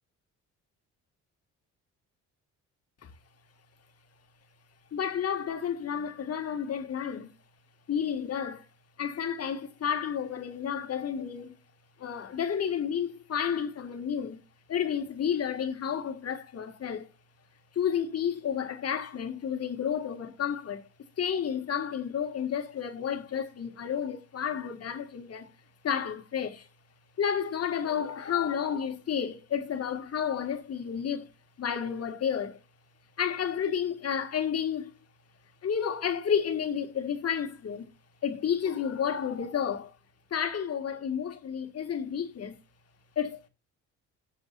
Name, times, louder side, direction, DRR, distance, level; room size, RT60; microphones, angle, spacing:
voice 1, 4.9-7.3 7.9-8.6 9.0-11.6 12.0-14.4 14.7-17.1 17.8-20.8 21.2-25.5 25.8-26.7 27.2-31.3 31.6-32.6 33.2-34.9 35.6-37.9 38.2-39.9 40.3-42.6 43.2-43.5, left 8 dB, 55° left, 1.9 m, -31 dB
19.0 x 7.0 x 2.6 m
cardioid pair, 90°, 30 cm